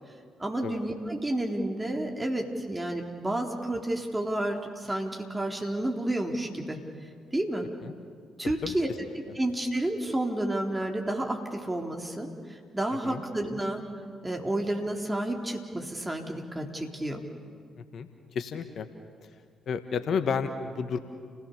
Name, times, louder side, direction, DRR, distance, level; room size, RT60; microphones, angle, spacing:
voice 1, 0.4-6.8 7.3-7.7 8.4-8.9 9.4-13.8 14.2-17.2, right 1 dB, 15° right, 2 dB, 4.0 m, -30 dB
voice 2, 8.4-8.7 13.0-13.2 17.9-18.9 19.7-21.0, left 6 dB, 60° left, 9 dB, 1.4 m, -31 dB
30.0 x 17.0 x 6.9 m, 2.1 s
hypercardioid pair, 45°, 0 cm